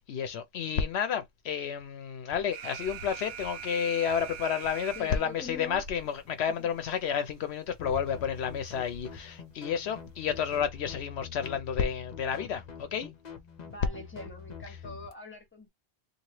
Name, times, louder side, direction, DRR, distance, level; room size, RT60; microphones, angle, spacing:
voice 1, 0.0-13.1 14.7-14.8, left 7 dB, 75° left, 0.8 m, -31 dB
Alarm, 2.5-5.5, right 9 dB, 90° right, 0.9 m, -42 dB
sound 1, 2.8-10.6, right 2 dB, 70° right, 1.1 m, -52 dB
voice 2, 4.9-5.8 6.6-6.7 13.6-15.7, left 2 dB, 10° left, 1.1 m, -44 dB
sound 2, 7.8-15.1, left 7 dB, 45° left, 0.7 m, -46 dB
3.1 x 2.7 x 2.9 m
omnidirectional pair, 1.1 m